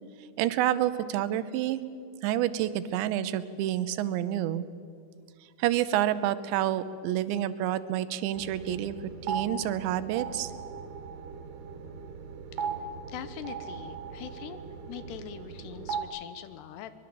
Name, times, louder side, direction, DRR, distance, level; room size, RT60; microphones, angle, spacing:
voice 1, 0.4-1.9 2.2-4.6 5.6-9.0 9.2-10.5, right 12 dB, 85° right, 14 dB, 3.1 m, -28 dB
sound 1, 8.3-16.0, right 6 dB, 70° right, 3.5 m, -38 dB
voice 2, 13.1-14.6 14.9-16.9, left 10 dB, 75° left, 12 dB, 2.9 m, -42 dB
23.0 x 21.5 x 7.8 m, 2.3 s
omnidirectional pair, 5.1 m